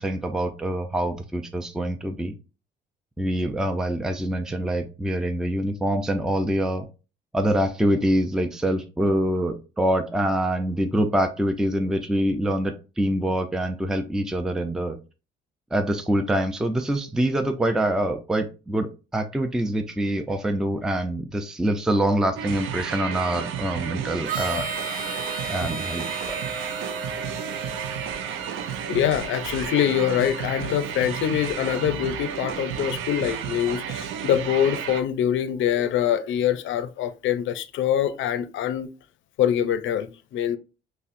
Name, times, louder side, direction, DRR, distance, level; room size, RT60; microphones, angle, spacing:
voice 1, 0.0-2.3 3.2-6.8 7.3-15.0 15.7-24.7 25.5-26.4, right 1 dB, 5° right, 0.4 m, -25 dB
sound 1, 22.4-35.0, right 8 dB, 90° right, 0.5 m, -32 dB
Harmonica, 24.2-29.0, right 3 dB, 45° right, 0.8 m, -34 dB
voice 2, 28.7-38.9 39.4-40.6, left 10 dB, 75° left, 0.5 m, -24 dB
5.3 x 2.1 x 2.5 m
cardioid pair, 90°, 20 cm